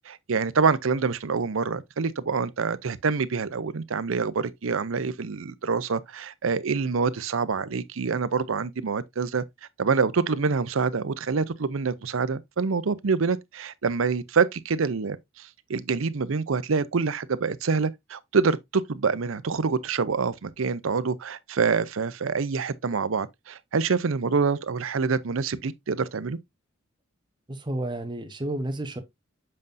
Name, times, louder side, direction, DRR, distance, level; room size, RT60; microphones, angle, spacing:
voice 1, 0.1-9.4 9.8-26.4, right 5 dB, 80° right, 0.6 m, -26 dB
voice 2, 27.5-29.0, right 1 dB, 25° right, 1.0 m, -31 dB
7.6 x 5.3 x 2.6 m
head